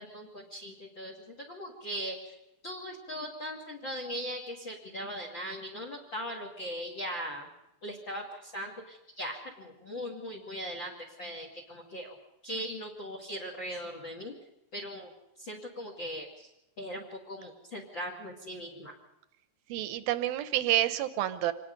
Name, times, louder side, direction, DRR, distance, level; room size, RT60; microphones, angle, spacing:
voice 1, 0.0-2.3 2.6-7.5 7.8-12.2 12.4-14.3 14.7-15.1 15.4-16.5 16.8-18.9, equal, 35° left, 3 dB, 2.3 m, -39 dB
voice 2, 19.7-21.5, right 13 dB, 75° right, 12 dB, 2.6 m, -28 dB
26.0 x 19.5 x 5.3 m, 0.86 s
omnidirectional pair, 4.8 m